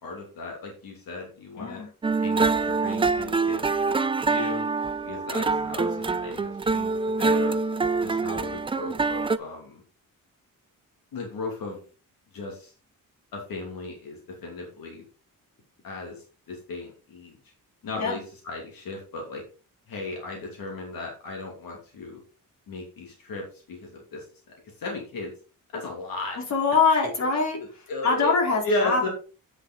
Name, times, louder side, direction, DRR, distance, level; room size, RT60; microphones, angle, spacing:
voice 1, 0.0-1.8 2.2-4.6 5.0-7.6 8.0-9.8 11.1-11.8 12.3-12.7 13.3-15.1 15.8-17.4 17.8-19.4 19.9-22.2 22.7-24.3 24.8-25.3 25.7-26.4 27.2-27.3 27.6-28.3 28.6-29.1, left 2 dB, 80° left, 0 dB, 2.9 m, -35 dB
voice 2, 1.6-1.9 18.0-18.2 26.5-27.6 28.0-29.1, left 4 dB, 55° left, 0 dB, 3.7 m, -23 dB
sound 1, 2.0-9.4, right 4 dB, 15° right, 0.3 m, -25 dB
8.9 x 7.8 x 3.9 m, 0.36 s
wide cardioid pair, 155°, 34 cm